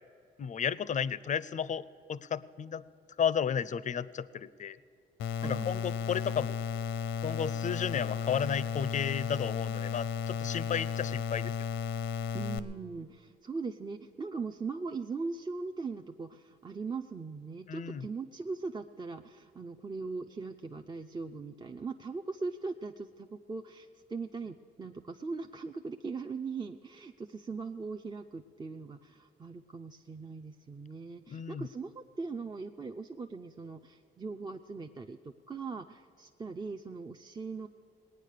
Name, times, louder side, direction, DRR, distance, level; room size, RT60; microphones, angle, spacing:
voice 1, 0.4-2.8 3.2-4.8 5.4-6.6 7.2-11.5 17.7-18.1 31.3-31.7, left 7 dB, 40° left, 18 dB, 0.5 m, -33 dB
sound 1, 5.2-12.6, left 6 dB, 85° left, 0.7 m, -34 dB
voice 2, 5.4-6.0 12.3-37.7, right 4 dB, 20° right, 5 dB, 0.5 m, -40 dB
19.0 x 9.2 x 6.6 m, 2.3 s
cardioid pair, 90°, 20 cm